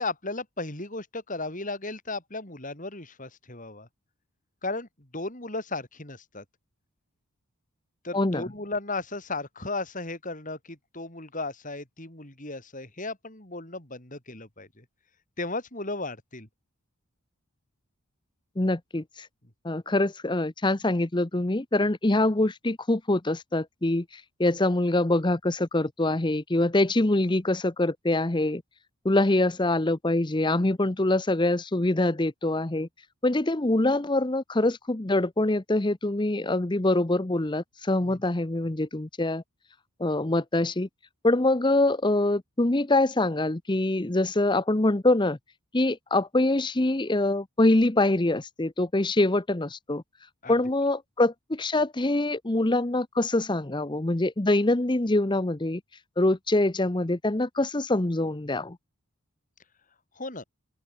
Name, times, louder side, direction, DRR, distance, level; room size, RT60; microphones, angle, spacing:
voice 1, 0.0-3.9 4.6-6.4 8.0-14.8 15.4-16.5 38.0-38.2 50.4-50.5 60.2-60.4, left 2 dB, 35° left, 4.4 m, -35 dB
voice 2, 8.1-8.4 18.6-19.3 19.6-28.6 29.0-32.9 33.2-39.4 40.0-40.9 41.2-45.4 45.7-50.0 50.5-55.8 56.2-58.8, left 2 dB, 20° left, 0.8 m, -24 dB
open air
head